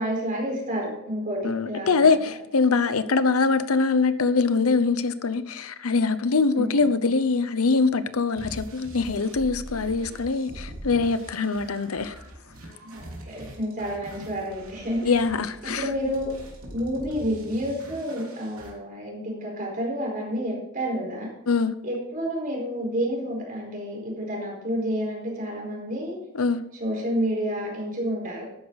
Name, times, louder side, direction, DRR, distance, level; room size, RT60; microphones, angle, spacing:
voice 1, 0.0-2.2 6.5-7.0 12.8-15.0 15.6-16.3 16.7-21.3 21.8-26.2 26.8-28.5, equal, 40° right, 4.6 m, -29 dB
voice 2, 1.4-12.1 15.0-15.8 21.5-21.7 26.3-26.6, left 4 dB, 90° left, 0.8 m, -23 dB
sound 1, 8.4-18.7, right 1 dB, 80° right, 3.2 m, -42 dB
12.5 x 9.7 x 4.1 m
head